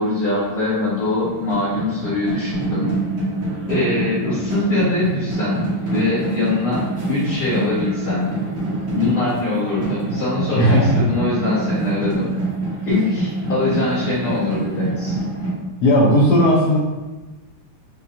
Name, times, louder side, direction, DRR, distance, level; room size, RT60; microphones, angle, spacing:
voice 1, 0.0-2.9 3.7-6.8 7.1-8.3 8.9-12.3 12.9-15.2, left 2 dB, 55° left, -10 dB, 1.4 m, -22 dB
sound 1, 1.0-15.5, right 2 dB, 55° right, 1.0 m, -26 dB
voice 2, 10.5-11.1 15.8-16.8, equal, 75° left, -4 dB, 0.9 m, -15 dB
5.1 x 2.2 x 2.7 m, 1.2 s
omnidirectional pair, 2.4 m